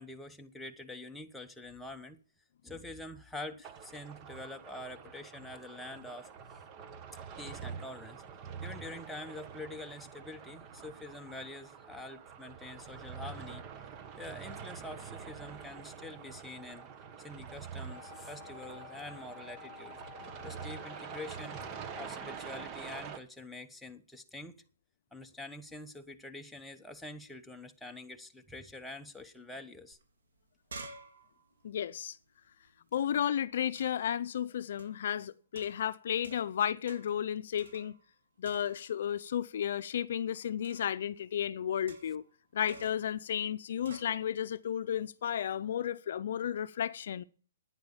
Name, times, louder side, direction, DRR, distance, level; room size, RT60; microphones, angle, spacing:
voice 1, 0.0-2.2 2.6-6.6 7.4-8.2 8.6-13.6 14.2-16.9 17.2-20.0 20.4-21.6 21.9-24.6 25.1-30.0, left 2 dB, 5° left, 1.0 m, -46 dB
sound 1, 3.6-23.2, right 7 dB, 30° right, 1.3 m, -46 dB
Wind instrument woodwind instrument, 17.9-22.8, left 11 dB, 35° left, 1.4 m, -52 dB
sound 2, 29.9-30.0 30.3-33.0 33.7-34.1 34.8-35.1 35.5-36.6 36.9-37.2 37.6-38.2 38.4-39.0 40.6-41.0 41.9-42.3 42.7-43.1 43.8-44.1, right 3 dB, 85° right, 3.6 m, -51 dB
voice 2, 31.6-32.2 32.9-38.0 38.4-42.2 42.5-47.2, left 9 dB, 65° left, 0.6 m, -33 dB
10.5 x 9.7 x 7.3 m
hypercardioid pair, 150°, 0 cm